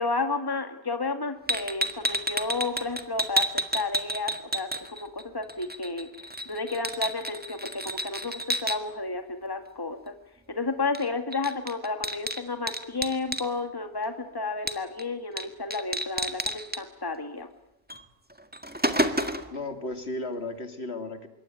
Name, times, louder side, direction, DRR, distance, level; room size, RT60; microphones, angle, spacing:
voice 1, 0.0-10.1 10.5-17.5, left 3 dB, 20° left, 7 dB, 2.0 m, -32 dB
sound 1, 1.5-5.2 5.5-8.8 10.9-11.1 11.3-13.5 14.7-15.0 15.4-15.5 15.7-16.8 17.9-18.0 18.4-19.6, right 1 dB, 10° right, 1.8 m, -30 dB
voice 2, 19.5-21.3, left 2 dB, 65° left, 8 dB, 3.0 m, -34 dB
26.0 x 23.0 x 9.3 m, 0.76 s
omnidirectional pair, 1.2 m